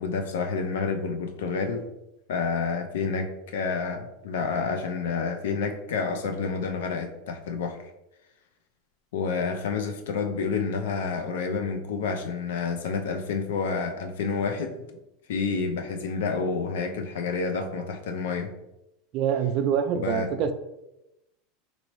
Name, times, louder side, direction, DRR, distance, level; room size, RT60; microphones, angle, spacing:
voice 1, 0.0-1.9 2.3-7.8 9.1-14.8 15.3-18.5 19.9-20.3, left 5 dB, 85° left, 6 dB, 0.4 m, -29 dB
voice 2, 19.1-20.5, right 8 dB, 50° right, 8 dB, 0.3 m, -25 dB
3.0 x 2.6 x 3.0 m, 0.91 s
supercardioid pair, 135°, 0 cm